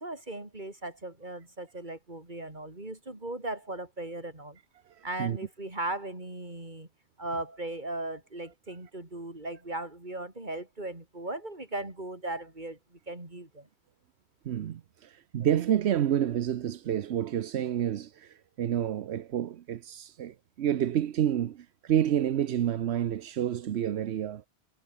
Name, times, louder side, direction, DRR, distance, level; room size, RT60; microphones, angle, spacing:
voice 1, 0.0-4.6 5.0-6.9 7.2-13.7, right 2 dB, 45° right, 4.4 m, -38 dB
voice 2, 4.9-5.4 14.5-24.4, right 10 dB, 85° right, 1.0 m, -29 dB
omnidirectional pair, 1.1 m